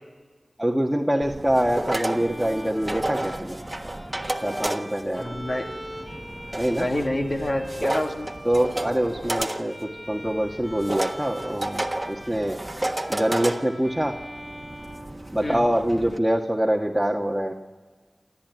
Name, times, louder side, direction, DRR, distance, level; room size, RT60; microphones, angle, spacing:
voice 1, 0.6-3.6 4.4-5.3 6.6-6.9 8.4-12.6 13.1-14.2 15.3-17.5, right 1 dB, 5° right, 1 dB, 1.7 m, -25 dB
sound 1, 1.2-16.2, right 1 dB, 25° right, 1.4 m, -32 dB
Bowed string instrument, 2.0-15.9, equal, 15° left, 3.4 m, -41 dB
voice 2, 5.2-5.7 6.7-8.3 15.4-15.6, left 1 dB, 45° left, 3 dB, 1.9 m, -27 dB
28.0 x 14.0 x 9.4 m, 1.4 s
wide cardioid pair, 50°, 0 cm